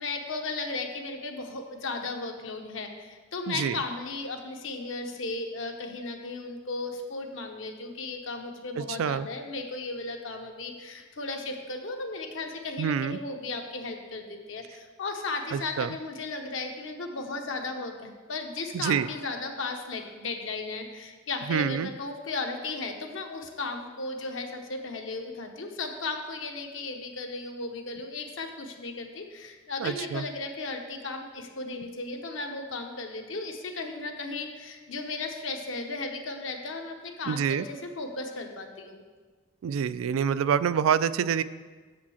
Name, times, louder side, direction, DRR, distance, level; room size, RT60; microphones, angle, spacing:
voice 1, 0.0-39.0, left 3 dB, 70° left, 3 dB, 0.9 m, -35 dB
voice 2, 3.5-3.8 8.8-9.3 12.8-13.2 15.5-15.9 18.7-19.1 21.5-21.9 29.8-30.2 37.3-37.7 39.6-41.4, right 7 dB, 90° right, 15 dB, 0.3 m, -26 dB
6.9 x 5.0 x 7.0 m, 1.4 s
head